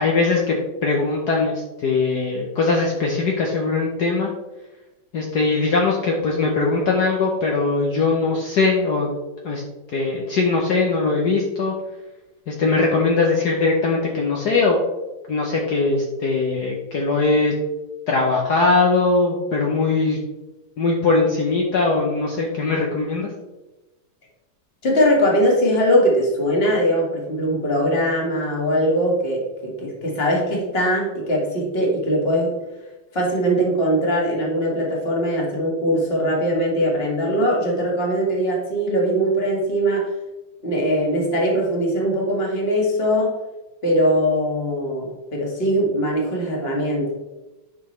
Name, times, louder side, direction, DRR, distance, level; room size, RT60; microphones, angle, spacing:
voice 1, 0.0-4.3 5.1-9.1 9.4-9.6 9.9-11.7 12.5-14.8 15.3-17.6 18.1-20.2 20.8-23.3, left 3 dB, 60° left, -1 dB, 1.3 m, -20 dB
voice 2, 24.8-32.6 33.1-40.1 40.6-43.3 43.8-47.1, equal, 30° left, -2 dB, 1.9 m, -21 dB
10.5 x 5.9 x 3.2 m, 1.1 s
omnidirectional pair, 2.3 m